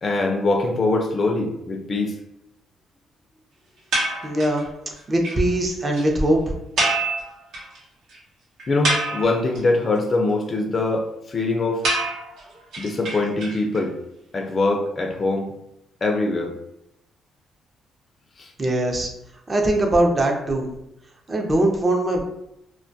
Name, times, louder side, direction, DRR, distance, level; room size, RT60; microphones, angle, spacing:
voice 1, 0.0-2.2 8.7-11.9 12.8-13.9 14.3-15.5 16.0-16.6 18.4-18.5, left 2 dB, 40° left, 2 dB, 0.3 m, -23 dB
sound 1, 3.9-4.6 5.0-5.1 5.2-5.4 5.7-5.8 5.9-6.1 6.8-7.8 8.1-8.2 8.6-9.6 11.8-13.8, right 2 dB, 75° right, 0.8 m, -25 dB
voice 2, 4.2-4.7 5.1-6.4 18.6-19.1 19.5-20.7 21.3-22.2, right 1 dB, 30° right, 2 dB, 0.5 m, -21 dB
2.2 x 2.1 x 2.6 m, 0.82 s
cardioid pair, 90°, 0 cm